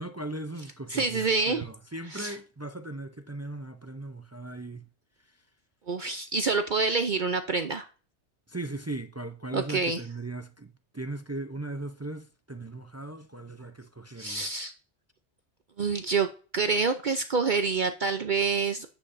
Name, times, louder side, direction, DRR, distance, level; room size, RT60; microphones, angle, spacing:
voice 1, 0.0-4.8 8.5-14.5, right 2 dB, 25° right, 0.3 m, -38 dB
voice 2, 0.9-1.7 2.1-2.4 5.9-7.9 9.5-10.0 14.2-14.7 15.8-16.3 16.5-18.9, right 4 dB, 50° right, 0.7 m, -27 dB
9.9 x 8.0 x 2.6 m
omnidirectional pair, 1.2 m